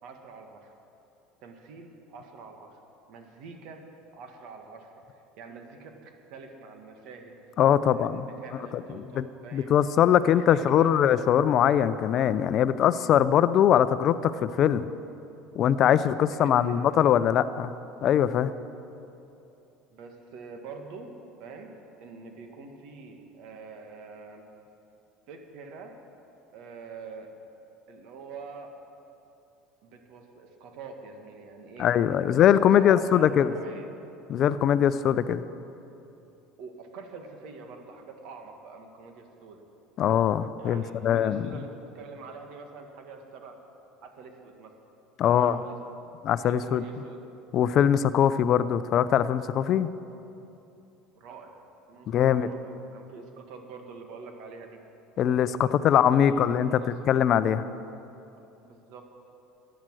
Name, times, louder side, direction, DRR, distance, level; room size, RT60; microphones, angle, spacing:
voice 1, 0.0-0.7 1.4-2.8 3.1-3.8 4.1-7.3 7.9-9.7 10.2-11.1 16.4-16.9 19.9-24.4 25.3-25.9 26.5-27.3 27.9-28.7 29.8-31.9 32.2-32.4 32.7-33.9 36.6-39.6 40.6-43.6 44.0-44.7 45.2-45.8 46.5-47.2 51.2-51.6 51.9-54.8 55.6-55.9 56.2-57.1 58.6-59.1, right 4 dB, 70° right, 4 dB, 1.8 m, -45 dB
voice 2, 7.6-8.3 9.2-9.3 9.5-14.8 15.5-17.7 18.0-18.5 31.8-33.5 34.3-35.4 40.0-41.5 45.2-45.6 46.2-46.8 47.5-49.9 52.1-52.5 55.2-57.7, left 9 dB, 50° left, 14 dB, 0.5 m, -22 dB
14.5 x 10.5 x 6.3 m, 2.8 s
supercardioid pair, 95°, 0 cm